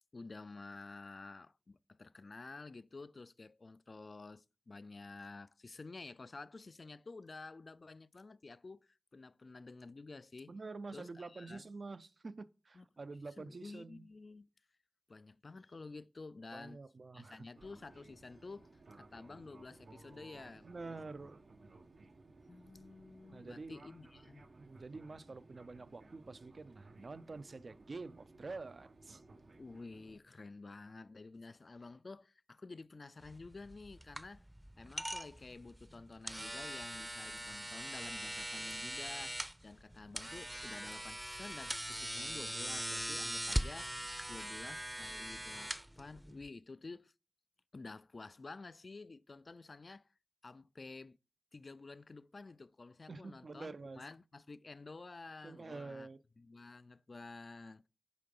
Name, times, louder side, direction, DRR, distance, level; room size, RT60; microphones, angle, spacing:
voice 1, 0.0-10.5 10.9-11.7 12.7-12.9 13.4-14.5 15.1-16.8 17.1-20.8 22.5-24.5 29.6-34.5 34.8-47.1 47.7-50.1 50.4-51.2 51.5-56.1 56.4-57.8, left 3 dB, 60° left, 0.4 m, -51 dB
voice 2, 10.5-14.1 16.5-17.5 20.6-21.4 23.3-23.8 24.6-29.2 53.1-54.0 55.4-56.2, right 3 dB, 65° right, 0.5 m, -47 dB
Fixed-wing aircraft airplane, 17.5-30.2, right 2 dB, 90° right, 1.1 m, -59 dB
sound 1, 33.2-46.5, right 1 dB, 10° right, 0.6 m, -41 dB
10.0 x 3.8 x 5.3 m
wide cardioid pair, 85°, 0 cm